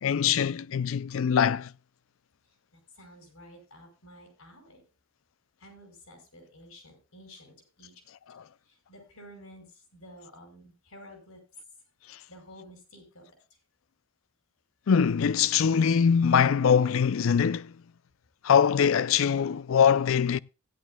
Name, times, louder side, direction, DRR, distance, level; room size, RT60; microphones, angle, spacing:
voice 1, 0.0-1.7 14.9-17.7 18.4-20.4, left 7 dB, 65° left, 0.4 m, -23 dB
voice 2, 2.7-4.8 5.6-7.9 8.7-11.4 12.3-13.6, equal, 90° left, 5.3 m, -51 dB
15.5 x 11.0 x 2.2 m
head